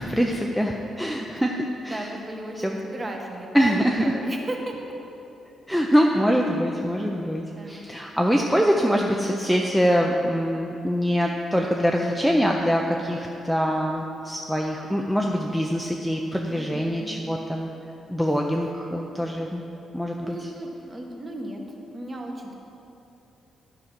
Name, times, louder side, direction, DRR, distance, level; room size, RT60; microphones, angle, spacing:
voice 1, 0.0-1.6 1.8-2.1 2.6-2.7 3.5-4.1 5.7-17.7 18.1-19.6 19.9-20.5, equal, ahead, 0 dB, 0.4 m, -24 dB
voice 2, 1.6-5.0 7.6-7.8 16.5-17.4 20.2-21.6 21.9-22.5, right 1 dB, 20° right, 1 dB, 1.0 m, -35 dB
11.5 x 4.9 x 5.9 m, 2.9 s
cardioid pair, 165°, 0 cm